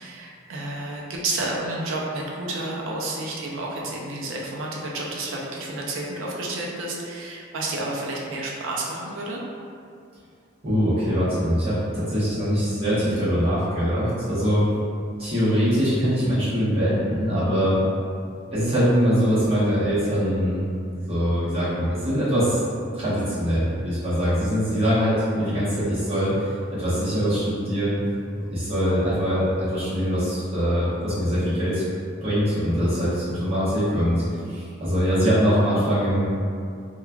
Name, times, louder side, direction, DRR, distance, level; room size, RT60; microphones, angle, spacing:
voice 1, 0.0-9.4, right 2 dB, 80° right, -3 dB, 0.5 m, -30 dB
voice 2, 10.6-14.6 15.2-17.8 18.5-20.7 21.1-22.6 22.9-28.0 28.5-31.8 32.2-36.3, equal, 30° right, -11 dB, 1.0 m, -23 dB
3.0 x 2.3 x 2.3 m, 2.4 s
head